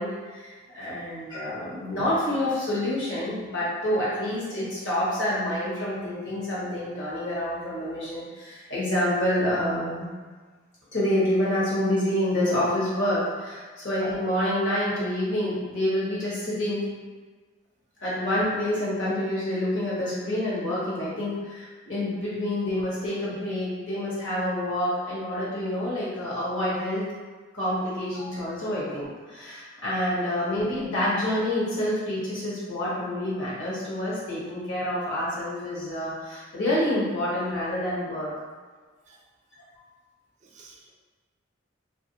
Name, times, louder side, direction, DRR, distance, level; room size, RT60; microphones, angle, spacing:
voice 1, 0.0-10.1 10.9-16.9 18.0-27.1 27.5-38.3, left 1 dB, 70° left, -8 dB, 1.1 m, -27 dB
voice 2, 40.4-40.9, right 3 dB, 35° right, -2 dB, 0.3 m, -52 dB
2.9 x 2.4 x 2.7 m, 1.4 s
head